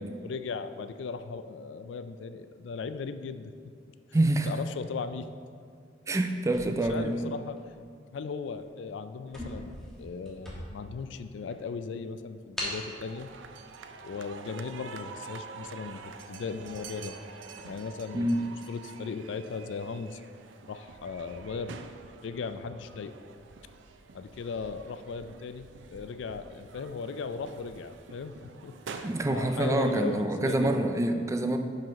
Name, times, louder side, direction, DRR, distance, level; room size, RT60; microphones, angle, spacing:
voice 1, 0.0-3.5 4.5-5.3 6.9-7.6 8.1-13.3 14.0-17.2 17.6-20.2 20.7-21.8 22.2-23.1 24.1-28.4 28.6-30.8, left 5 dB, 75° left, 11 dB, 0.3 m, -37 dB
voice 2, 4.1-4.5 6.1-7.3 18.1-18.4 29.0-31.6, right 1 dB, 15° right, 6 dB, 0.4 m, -26 dB
sound 1, 6.5-7.8 8.4-8.6 8.9-9.0 9.3-11.0 11.5-11.6 12.6-12.9, left 1 dB, 5° left, 1.2 m, -39 dB
sound 2, 12.9-30.3, right 5 dB, 90° right, 0.4 m, -47 dB
5.6 x 5.3 x 5.1 m, 2.3 s
head